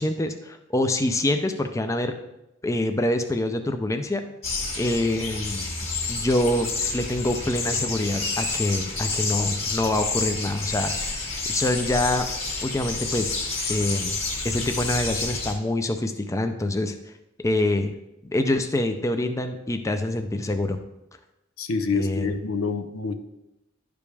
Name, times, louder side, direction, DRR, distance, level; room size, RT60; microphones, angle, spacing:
voice 1, 0.0-2.1 2.6-4.2 4.8-5.6 6.1-10.9 11.5-12.3 12.6-13.4 13.7-14.2 14.4-16.9 17.4-18.0 18.3-20.8 21.9-22.3, left 1 dB, 15° left, 7 dB, 0.4 m, -25 dB
sound 1, 4.4-15.5, left 3 dB, 30° left, 1.9 m, -29 dB
voice 2, 21.6-23.2, left 4 dB, 80° left, 8 dB, 0.7 m, -27 dB
11.0 x 5.2 x 3.4 m, 0.90 s
head